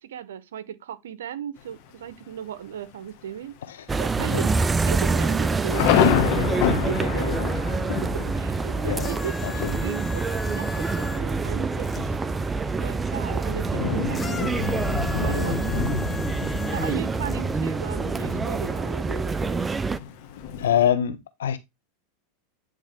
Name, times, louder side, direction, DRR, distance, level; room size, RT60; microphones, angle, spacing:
voice 1, 0.0-3.5 4.0-4.6 4.8-7.3 8.3-9.4 9.8-12.1 12.8-16.0 16.7-19.7, right 9 dB, 85° right, 0.8 m, -36 dB
Thunder, 1.6-2.1 2.7-2.8 3.0-3.5 3.8-3.9 4.6-20.9, left 9 dB, 60° left, 1.5 m, -30 dB
sound 1, 3.9-20.0, right 4 dB, 15° right, 0.4 m, -26 dB
sound 2, 9.0-12.0 14.1-17.4 18.3-18.4, left 4 dB, 20° left, 0.7 m, -39 dB
voice 2, 9.4-9.8 20.6-21.6, left 9 dB, 90° left, 1.0 m, -24 dB
9.2 x 3.7 x 3.4 m
hypercardioid pair, 115°, 0 cm